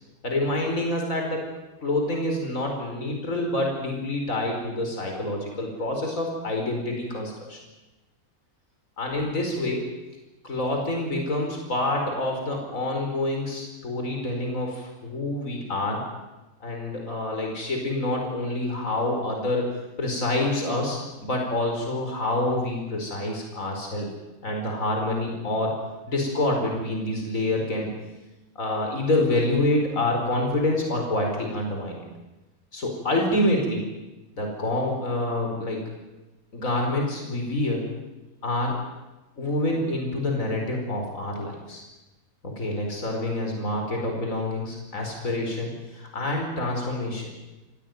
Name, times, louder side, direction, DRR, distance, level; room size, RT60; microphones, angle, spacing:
voice 1, 0.2-1.5 1.8-7.6 9.0-9.9 10.4-16.0 16.6-24.1 24.4-25.8 26.1-27.9 28.6-32.0 32.7-33.9 34.3-35.8 36.5-37.8 38.4-38.7 39.4-41.8 42.4-47.2, left 1 dB, 65° left, 1 dB, 5.1 m, -27 dB
28.0 x 17.0 x 9.4 m, 1.1 s
omnidirectional pair, 1.5 m